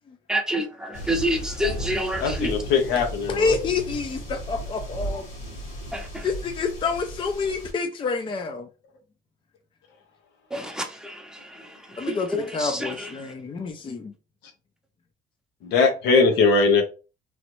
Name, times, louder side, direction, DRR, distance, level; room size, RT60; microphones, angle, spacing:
voice 1, 0.3-2.6 5.9-6.3 10.5-13.3, equal, 5° right, 0.7 m, -29 dB
sound 1, 0.9-7.7, equal, 65° left, 1.7 m, -35 dB
voice 2, 2.2-3.5 15.6-16.8, left 4 dB, 85° left, 0.8 m, -20 dB
voice 3, 3.3-5.3 6.2-8.7 12.0-14.1, left 4 dB, 30° left, 0.5 m, -28 dB
3.1 x 2.5 x 3.0 m
cardioid pair, 110°, 17 cm